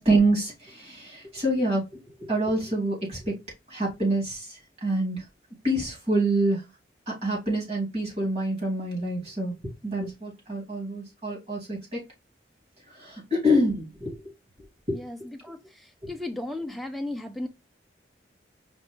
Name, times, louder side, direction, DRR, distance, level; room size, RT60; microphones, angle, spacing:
voice 1, 0.0-1.8 2.2-3.4 3.7-5.2 5.6-6.6 7.1-9.5 9.8-12.0 12.9-14.2 16.0-16.1, right 1 dB, 35° right, 2.5 m, -26 dB
voice 2, 14.9-17.5, left 1 dB, ahead, 0.5 m, -35 dB
5.0 x 2.5 x 3.6 m
head